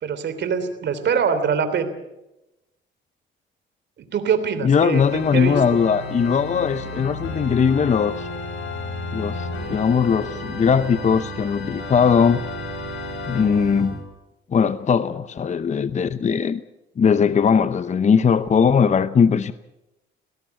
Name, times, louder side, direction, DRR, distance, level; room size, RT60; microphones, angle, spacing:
voice 1, 0.0-1.9 4.1-5.6, right 6 dB, 60° right, 3.2 m, -23 dB
voice 2, 4.6-8.3 9.1-12.4 13.3-14.0 14.5-16.6 17.0-19.5, left 6 dB, 35° left, 0.7 m, -19 dB
Organ, 4.9-14.0, left 1 dB, 80° left, 6.6 m, -32 dB
19.0 x 18.0 x 8.2 m
cardioid pair, 90°, 20 cm